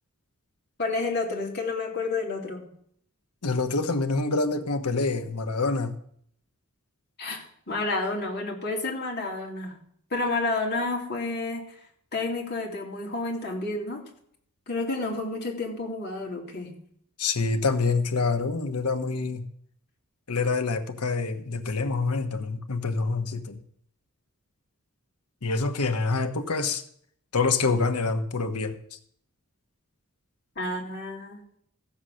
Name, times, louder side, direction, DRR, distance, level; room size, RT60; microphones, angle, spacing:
voice 1, 0.8-2.7 7.2-9.8 10.1-11.7 12.1-14.0 14.7-16.7 30.6-31.4, left 3 dB, 50° left, 0 dB, 2.7 m, -30 dB
voice 2, 3.4-5.9 17.2-19.4 20.3-23.6 25.4-26.8 27.3-28.8, left 3 dB, 85° left, 8 dB, 1.2 m, -26 dB
14.5 x 7.2 x 6.3 m, 0.66 s
head